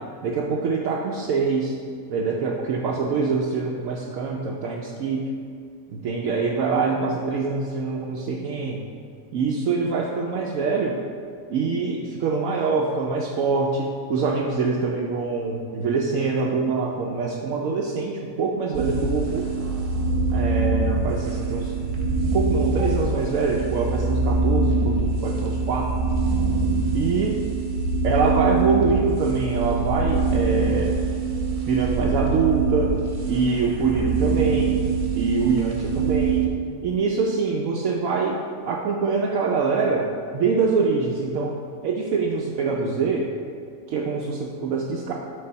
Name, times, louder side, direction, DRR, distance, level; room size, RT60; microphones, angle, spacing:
voice 1, 0.2-1.7 2.1-5.2 5.9-8.8 9.3-10.9 11.5-19.5 20.3-21.7 22.2-25.9 26.9-27.4 28.0-30.9 31.7-32.9 33.3-34.8 35.2-36.4 36.8-38.4 38.7-40.0 40.3-41.5 41.8-43.3 43.9-45.1, right 4 dB, 70° right, -1 dB, 0.9 m, -24 dB
sound 1, 18.7-36.5, right 4 dB, 90° right, 1.4 m, -24 dB
5.4 x 4.1 x 5.6 m, 2.3 s
omnidirectional pair, 1.5 m